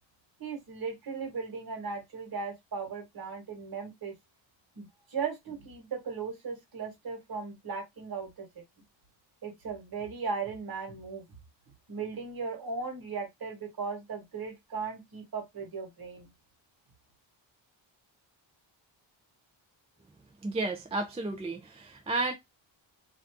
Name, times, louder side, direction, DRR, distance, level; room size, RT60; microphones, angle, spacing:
voice 1, 0.4-4.1 4.8-8.5 9.4-11.2 11.9-16.3, right 5 dB, 50° right, 1.4 m, -37 dB
voice 2, 20.4-22.3, right 2 dB, 15° right, 0.3 m, -32 dB
2.6 x 2.5 x 3.3 m
wide cardioid pair, 135°, 47 cm